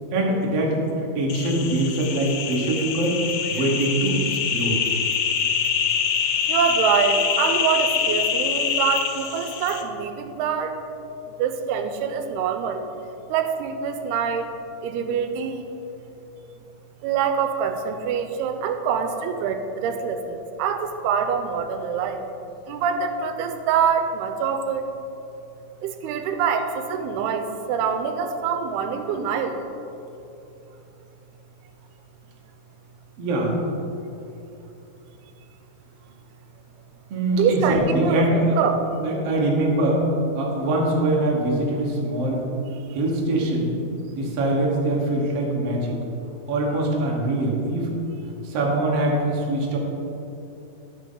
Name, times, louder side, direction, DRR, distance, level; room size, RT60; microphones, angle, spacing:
voice 1, 0.1-3.2 3.5-4.8 33.2-33.6 37.1-38.6 39.0-40.0 40.3-42.4 42.9-43.8 44.1-46.0 46.5-47.9 48.4-49.8, right 1 dB, 65° right, -2 dB, 1.6 m, -23 dB
sound 1, 1.3-9.8, left 7 dB, 80° left, 2.6 m, -25 dB
voice 2, 6.5-10.8 11.3-12.9 13.3-14.5 14.8-15.7 17.0-22.2 22.7-24.9 25.8-29.6 37.4-38.3 38.6-38.8 42.9-43.0, right 7 dB, 85° right, 7 dB, 2.6 m, -25 dB
12.5 x 6.0 x 3.8 m, 2.9 s
omnidirectional pair, 4.6 m